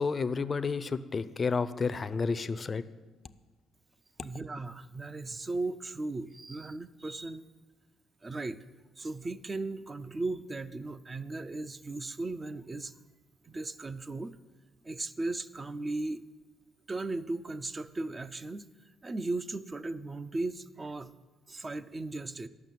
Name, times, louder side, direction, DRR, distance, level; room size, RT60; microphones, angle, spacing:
voice 1, 0.0-2.8, left 4 dB, 35° left, 13 dB, 0.5 m, -30 dB
voice 2, 4.2-7.5 8.2-8.6 9.0-12.9 13.4-14.4 14.8-16.2 16.9-18.7 19.0-21.1 21.5-22.5, right 2 dB, 25° right, 13 dB, 0.5 m, -36 dB
10.5 x 6.1 x 7.5 m, 1.3 s
cardioid pair, 90°, 0 cm